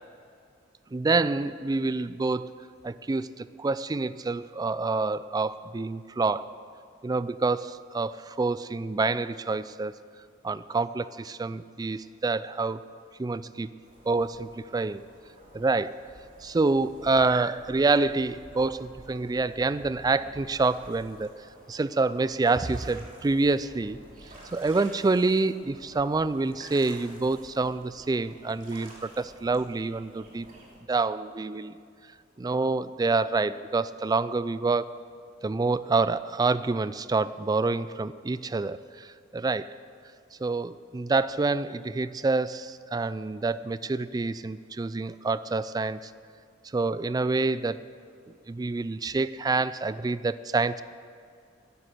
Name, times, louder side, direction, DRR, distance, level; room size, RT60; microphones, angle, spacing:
voice 1, 0.9-2.5 2.8-6.5 7.0-10.0 10.4-12.8 13.2-13.8 14.1-15.0 15.5-16.1 16.4-21.3 21.7-24.0 24.5-30.5 30.9-31.7 32.4-34.9 35.4-39.7 40.4-46.1 46.7-47.8 48.5-50.8, right 3 dB, 20° right, 16 dB, 0.3 m, -27 dB
sound 1, 13.8-30.8, right 1 dB, 45° right, 2.9 m, -51 dB
11.5 x 10.0 x 8.0 m, 2.3 s
head